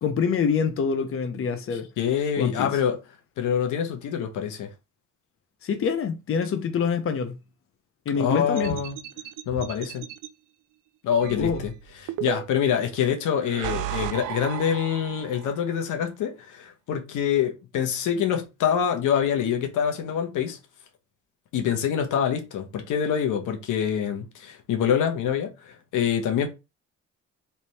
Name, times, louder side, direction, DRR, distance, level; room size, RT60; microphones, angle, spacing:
voice 1, 0.0-1.9 2.4-2.7 5.6-7.4 8.1-8.8 11.3-11.6, left 6 dB, 45° left, 0.8 m, -25 dB
voice 2, 2.0-3.0 3.4-4.7 8.2-9.0 9.5-10.1 11.0-11.7 12.0-20.6 21.5-26.5, left 8 dB, 80° left, 1.0 m, -25 dB
sound 1, 8.6-10.3 11.2-12.7 13.3-15.5, right 13 dB, 85° right, 0.5 m, -34 dB
3.4 x 2.9 x 4.2 m
cardioid pair, 90°, 30 cm